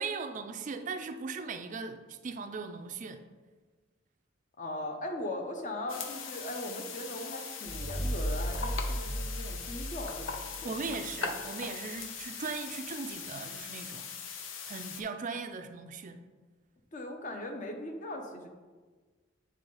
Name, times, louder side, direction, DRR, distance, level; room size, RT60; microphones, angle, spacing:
voice 1, 0.0-3.2 10.6-14.1 14.7-16.2, right 4 dB, 40° right, 7 dB, 0.4 m, -38 dB
voice 2, 4.6-10.3 10.6-10.9 16.9-18.5, left 1 dB, 40° left, 4 dB, 0.8 m, -39 dB
sound 1, 5.9-15.0, left 5 dB, 80° left, 0.7 m, -40 dB
sound 2, 7.7-11.0, equal, ahead, 0.7 m, -35 dB
7.0 x 3.3 x 5.3 m, 1.4 s
head